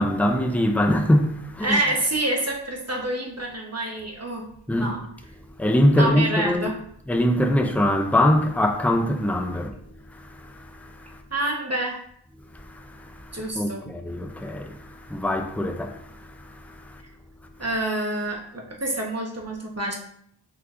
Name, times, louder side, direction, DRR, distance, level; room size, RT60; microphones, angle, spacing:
voice 1, 0.0-1.8 4.7-5.0 5.6-6.7 7.1-9.8 10.1-11.2 12.5-17.0, left 1 dB, 5° left, 0.5 m, -23 dB
voice 2, 1.6-4.5 4.7-5.0 5.9-6.8 11.3-12.0 13.3-13.8 17.6-19.9, right 1 dB, 35° right, 1.1 m, -27 dB
5.5 x 3.9 x 2.5 m
wide cardioid pair, 45°, 46 cm